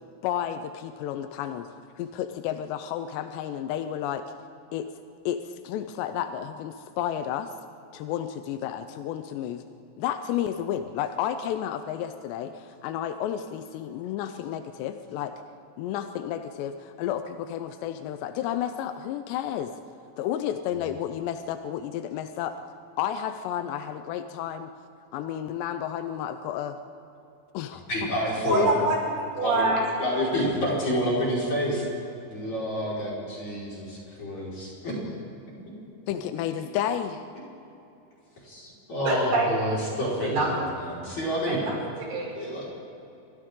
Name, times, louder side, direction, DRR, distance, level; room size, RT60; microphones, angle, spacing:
voice 1, 0.2-1.7 2.0-4.2 4.7-4.9 5.3-7.5 7.9-9.6 10.0-15.3 15.8-19.7 20.2-22.6 23.0-24.7 25.1-26.8 27.5-28.1 36.1-37.2, left 10 dB, 80° left, 8 dB, 2.5 m, -31 dB
voice 2, 27.9-28.6 29.4-29.7 30.0-31.9 32.3-33.6 34.2-34.9 38.4-41.6 42.3-42.6, equal, 35° left, -6 dB, 5.8 m, -28 dB
voice 3, 28.4-29.0 29.4-29.9 39.1-39.5 40.2-40.5 41.5-42.3, right 2 dB, 70° right, -3 dB, 7.3 m, -26 dB
29.0 x 24.5 x 3.8 m, 2.8 s
omnidirectional pair, 5.7 m